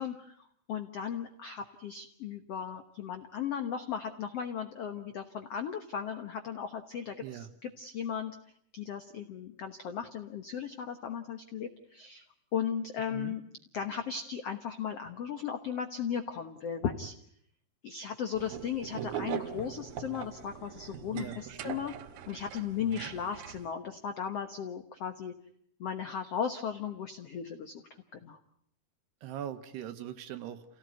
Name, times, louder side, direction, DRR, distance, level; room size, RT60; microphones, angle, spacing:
voice 1, 0.0-8.4 8.7-12.2 12.5-13.4 13.7-17.1 17.8-21.9 22.3-25.3 25.8-27.7 28.1-28.4, left 7 dB, 75° left, 8 dB, 1.4 m, -36 dB
sound 1, 18.3-23.7, right 9 dB, 70° right, 2.8 m, -41 dB
voice 2, 21.1-21.8 22.8-23.1 29.2-30.8, right 11 dB, 85° right, 9 dB, 3.6 m, -42 dB
29.0 x 17.5 x 9.3 m, 0.68 s
omnidirectional pair, 4.7 m